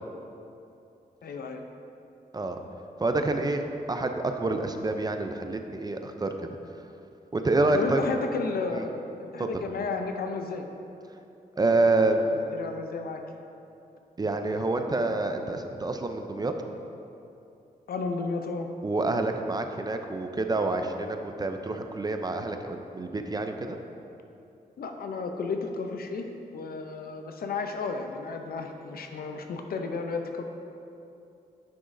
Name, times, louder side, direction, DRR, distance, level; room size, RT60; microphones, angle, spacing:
voice 1, 1.2-1.6 7.7-10.7 12.2-13.2 17.9-18.7 24.8-26.3 26.5-30.4, left 4 dB, 70° left, 5 dB, 0.6 m, -33 dB
voice 2, 3.0-3.6 3.9-6.5 7.3-8.0 8.7-8.8 9.4-9.5 11.6-12.3 14.2-16.5 18.8-23.8, right 2 dB, 25° right, 6 dB, 0.5 m, -27 dB
9.4 x 6.1 x 2.6 m, 2.7 s
cardioid pair, 85°, 16 cm